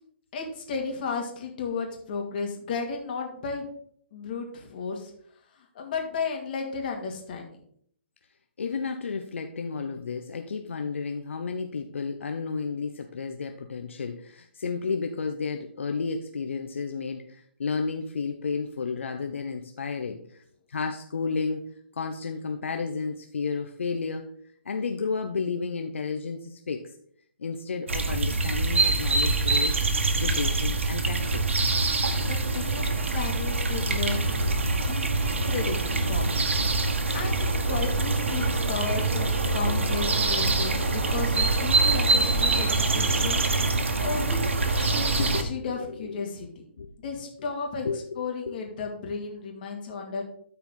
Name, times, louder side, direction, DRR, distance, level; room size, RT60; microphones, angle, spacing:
voice 1, 0.3-3.7 4.1-5.1 5.5-7.6 32.2-44.4 44.7-46.6 47.0-47.9 48.2-50.2, left 5 dB, 45° left, 2 dB, 2.2 m, -34 dB
voice 2, 8.6-20.4 20.7-21.7 21.9-24.3 24.6-26.9 27.4-29.8 30.2-31.5 45.2-45.7 46.0-46.3 46.8-46.9 47.8-48.6, left 5 dB, 80° left, 5 dB, 0.8 m, -32 dB
sound 1, 27.9-45.4, right 3 dB, 85° right, 1.3 m, -25 dB
13.0 x 4.6 x 3.7 m, 0.64 s
hypercardioid pair, 150°, 7 cm